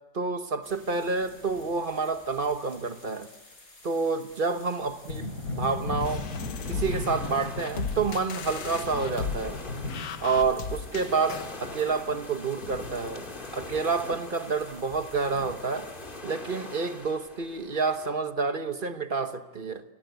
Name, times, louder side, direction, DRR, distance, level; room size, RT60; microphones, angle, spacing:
voice 1, 0.1-3.3 3.8-6.3 6.7-9.6 10.2-13.2 13.5-15.9 16.2-19.8, right 4 dB, 35° right, 1.1 m, -29 dB
sound 1, 0.6-16.2, left 2 dB, 60° left, 5.2 m, -40 dB
sound 2, 6.0-11.6, left 7 dB, 80° left, 1.7 m, -36 dB
sound 3, 6.0-18.1, left 2 dB, 30° left, 2.4 m, -44 dB
28.5 x 21.0 x 8.1 m
omnidirectional pair, 1.8 m